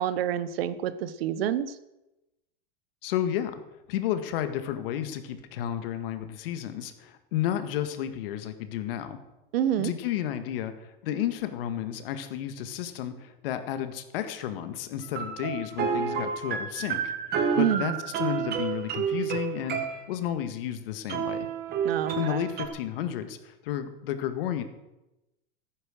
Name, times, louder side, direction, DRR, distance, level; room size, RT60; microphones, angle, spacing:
voice 1, 0.0-1.7 9.5-9.9 17.6-18.0 21.8-22.4, right 10 dB, 85° right, 15 dB, 1.1 m, -27 dB
voice 2, 3.0-3.6 3.9-9.2 9.8-17.1 17.5-21.5 22.2-24.6, left 10 dB, 75° left, 9 dB, 1.8 m, -32 dB
sound 1, 15.0-20.1 21.1-22.7, right 7 dB, 35° right, 1.7 m, -30 dB
14.0 x 9.6 x 6.5 m, 0.97 s
supercardioid pair, 135°, 29 cm